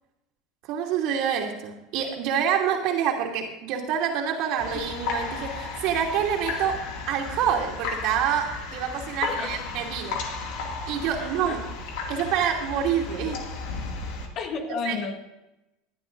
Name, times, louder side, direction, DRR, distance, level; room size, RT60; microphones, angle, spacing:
voice 1, 0.6-6.8 7.1-10.2 10.9-11.6 12.1-13.4 13.7-13.8 14.8-15.0, right 8 dB, 65° right, 2.8 m, -27 dB
sound 1, 4.6-14.3, left 4 dB, 70° left, 2.3 m, -34 dB
voice 2, 9.2-9.7 11.2-11.6 14.4-15.2, left 5 dB, 50° left, 1.9 m, -32 dB
19.5 x 11.0 x 2.6 m
supercardioid pair, 120°, 0 cm